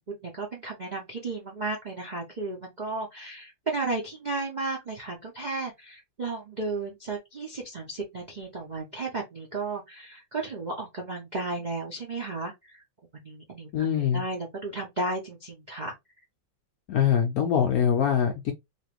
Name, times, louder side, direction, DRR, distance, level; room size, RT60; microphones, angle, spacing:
voice 1, 0.1-12.8 13.1-15.9, right 3 dB, 85° right, 0.4 m, -34 dB
voice 2, 13.7-14.2 16.9-18.5, left 8 dB, 75° left, 0.8 m, -23 dB
3.1 x 2.5 x 3.0 m
omnidirectional pair, 2.1 m